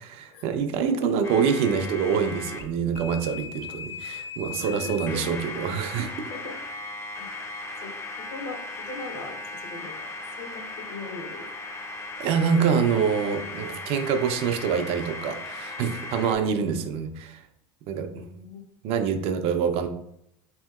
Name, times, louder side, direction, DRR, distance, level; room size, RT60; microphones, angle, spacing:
voice 1, 0.2-6.1 12.2-17.4 17.9-18.2 18.8-19.9, right 6 dB, 55° right, 7 dB, 0.4 m, -25 dB
sound 1, 1.2-2.6 2.9-16.4, left 2 dB, 20° left, 0.4 m, -37 dB
voice 2, 4.6-5.4 6.3-6.9 7.2-7.3 7.8-7.9 8.3-10.1 10.4-11.5 16.2-17.0 18.1-18.6, left 3 dB, 55° left, 4 dB, 0.7 m, -41 dB
2.8 x 2.7 x 2.3 m, 0.75 s
hypercardioid pair, 100°, 12 cm